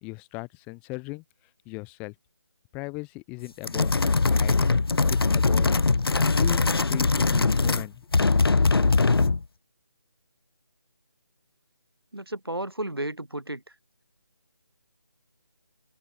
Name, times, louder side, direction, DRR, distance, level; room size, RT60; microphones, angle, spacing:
voice 1, 0.0-1.2 1.7-2.1 2.7-3.9 4.3-4.7 5.1-5.7 6.3-8.1, left 28 dB, 10° left, 1.0 m, -37 dB
sound 1, 3.6-7.9 8.1-9.4, left 3 dB, 80° left, 0.4 m, -21 dB
voice 2, 12.1-13.6, right 1 dB, 90° right, 1.7 m, -33 dB
figure-of-eight pair, 155°, 12 cm